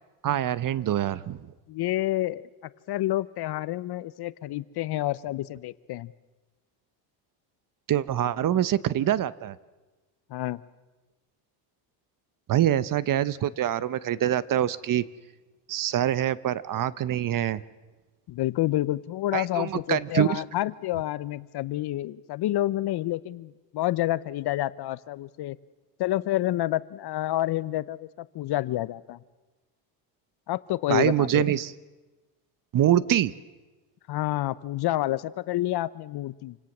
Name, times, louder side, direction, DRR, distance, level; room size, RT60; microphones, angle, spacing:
voice 1, 0.2-1.4 7.9-9.6 12.5-15.0 15.7-17.6 19.3-20.4 30.9-31.7 32.7-33.3, right 11 dB, 40° right, 18 dB, 0.8 m, -25 dB
voice 2, 1.7-2.4 2.9-6.1 10.3-10.6 18.3-25.6 26.0-29.2 30.5-31.4 34.1-36.6, left 15 dB, 50° left, 17 dB, 0.8 m, -28 dB
27.5 x 17.5 x 7.3 m, 1.2 s
supercardioid pair, 100°, 49 cm